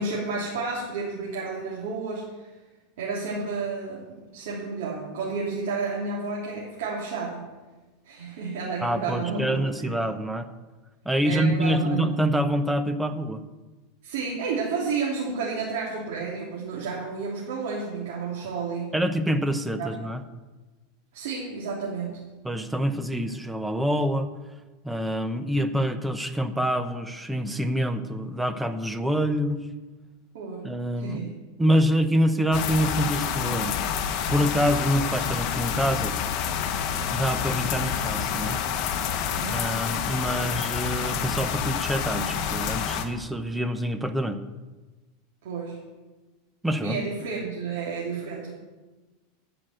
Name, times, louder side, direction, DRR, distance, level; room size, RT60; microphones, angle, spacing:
voice 1, 0.0-2.5 3.0-7.5 8.0-10.1 11.2-12.3 14.0-18.9 19.8-20.1 21.1-22.2 30.3-31.3 39.3-39.8 45.4-45.8 46.8-48.5, right 4 dB, 75° right, -5 dB, 3.1 m, -31 dB
voice 2, 8.8-10.5 11.0-13.4 18.9-20.2 22.4-24.3 24.8-29.6 30.6-31.2 31.6-33.8 34.3-36.1 37.1-38.6 39.5-44.4 46.6-47.0, equal, 5° right, 10 dB, 0.8 m, -26 dB
sound 1, 32.5-43.0, left 8 dB, 45° left, 1.2 m, -28 dB
11.5 x 5.9 x 7.9 m, 1.2 s
supercardioid pair, 145°, 0 cm